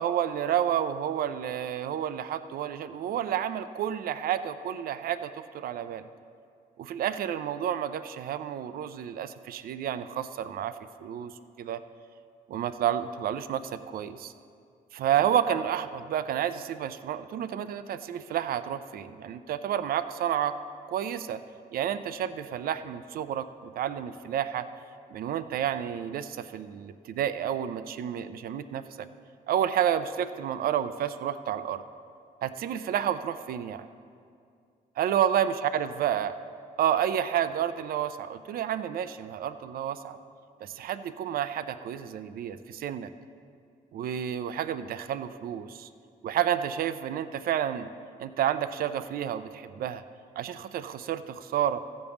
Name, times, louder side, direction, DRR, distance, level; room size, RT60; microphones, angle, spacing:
voice 1, 0.0-6.0 6.8-10.7 11.0-11.3 11.6-11.8 12.5-14.3 14.9-20.5 20.9-21.4 21.7-24.7 25.1-29.1 29.5-31.8 32.4-33.8 35.0-36.3 36.8-40.2 40.6-43.1 43.9-45.9 46.2-47.9 48.2-50.0 50.4-51.8, right 10 dB, 70° right, 12 dB, 0.5 m, -30 dB
14.5 x 5.3 x 7.0 m, 2.3 s
cardioid pair, 105°, 16 cm